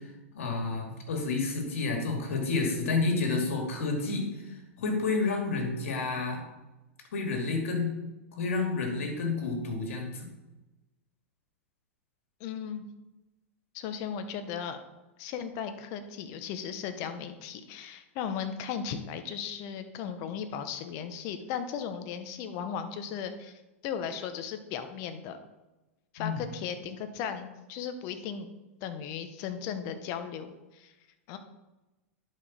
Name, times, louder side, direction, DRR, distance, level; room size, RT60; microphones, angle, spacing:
voice 1, 0.3-4.4 4.8-6.4 7.1-7.9 8.3-10.3 26.2-26.4, left 3 dB, 70° left, 2 dB, 2.4 m, -30 dB
voice 2, 12.4-12.9 13.7-14.8 15.2-25.4 26.1-28.5 28.8-30.9 31.3-31.4, left 7 dB, 45° left, 8 dB, 1.1 m, -36 dB
11.0 x 5.2 x 4.4 m, 1.1 s
hypercardioid pair, 105°, 7 cm